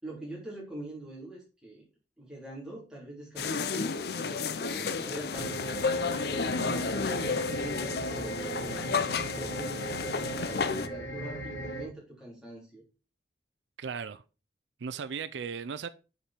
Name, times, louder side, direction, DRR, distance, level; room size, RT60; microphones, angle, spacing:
voice 1, 0.0-1.8 2.2-5.6 6.3-12.8, right 1 dB, 5° right, 3.5 m, -44 dB
sound 1, 3.4-10.9, left 4 dB, 60° left, 0.6 m, -32 dB
sound 2, 5.3-11.9, right 1 dB, 80° left, 2.6 m, -38 dB
voice 2, 13.8-14.2 14.8-15.9, right 6 dB, 85° right, 0.4 m, -36 dB
7.2 x 5.3 x 4.4 m
head